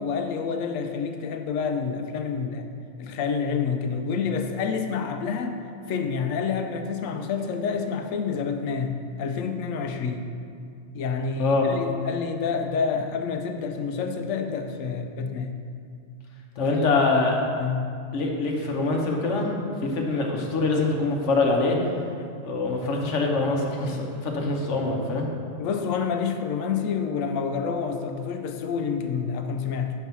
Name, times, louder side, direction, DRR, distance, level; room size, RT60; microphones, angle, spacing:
voice 1, 0.0-2.7 3.0-10.3 10.9-15.6 16.7-17.0 17.6-17.9 22.2-22.3 25.6-29.9, left 6 dB, 90° left, 6 dB, 1.0 m, -28 dB
voice 2, 16.6-17.4 18.1-19.5 19.8-21.8 22.4-25.3, left 3 dB, 70° left, 1 dB, 1.2 m, -24 dB
5.9 x 4.6 x 5.5 m, 2.4 s
omnidirectional pair, 1.3 m